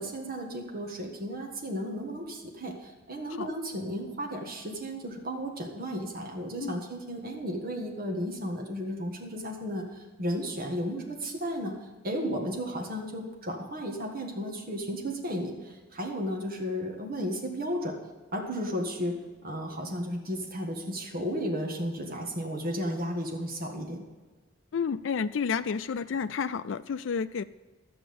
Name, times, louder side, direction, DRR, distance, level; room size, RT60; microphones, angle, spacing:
voice 1, 0.0-11.7 12.0-18.0 18.3-19.1 19.4-24.0, equal, 50° right, 1 dB, 1.6 m, -34 dB
voice 2, 24.7-27.4, left 6 dB, 70° left, 11 dB, 0.4 m, -30 dB
12.0 x 8.6 x 5.3 m, 1.3 s
head